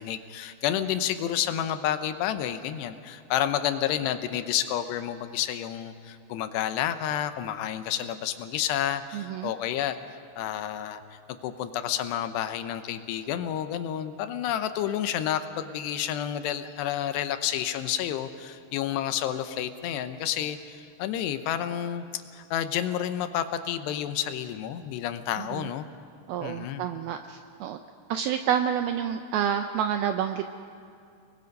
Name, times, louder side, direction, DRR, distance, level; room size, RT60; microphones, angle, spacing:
voice 1, 0.0-10.0 10.4-22.0 22.3-25.9 26.4-26.9, left 10 dB, 80° left, 9 dB, 2.8 m, -30 dB
voice 2, 9.1-9.5 25.4-25.7 26.3-27.8 28.1-30.5, right 9 dB, 80° right, 7 dB, 2.2 m, -29 dB
30.0 x 20.0 x 5.4 m, 2.4 s
omnidirectional pair, 5.1 m